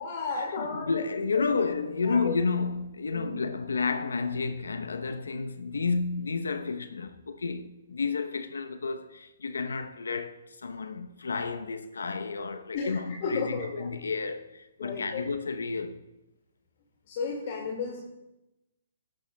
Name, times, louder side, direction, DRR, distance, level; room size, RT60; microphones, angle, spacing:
voice 1, 0.0-1.1 1.3-1.6 2.0-2.3 3.1-3.3 12.7-13.9 14.8-15.3 17.1-18.0, left 4 dB, 50° left, 1.9 m, -33 dB
voice 2, 0.7-16.0, left 4 dB, 80° left, 0.7 m, -31 dB
13.0 x 11.5 x 2.2 m
hypercardioid pair, 135°, 0 cm